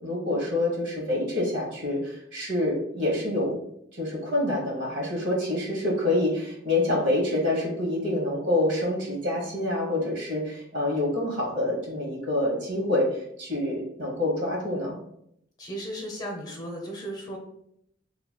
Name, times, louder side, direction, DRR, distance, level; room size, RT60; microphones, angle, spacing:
voice 1, 0.0-3.6 3.9-15.0, left 1 dB, 70° right, -2 dB, 1.4 m, -27 dB
voice 2, 15.6-17.4, right 1 dB, 20° left, 0 dB, 0.8 m, -35 dB
3.3 x 2.1 x 4.2 m, 0.74 s
head